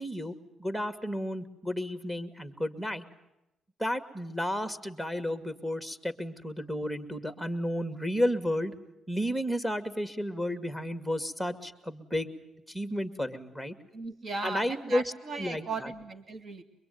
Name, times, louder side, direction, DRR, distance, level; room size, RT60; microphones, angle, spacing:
voice 1, 0.0-3.1 3.8-8.7 9.1-12.3 12.7-13.8 14.4-15.9, equal, 5° right, 9 dB, 2.2 m, -32 dB
voice 2, 13.9-16.6, right 4 dB, 45° right, 7 dB, 2.3 m, -37 dB
23.0 x 23.0 x 9.4 m, 0.89 s
cardioid pair, 90°, 0 cm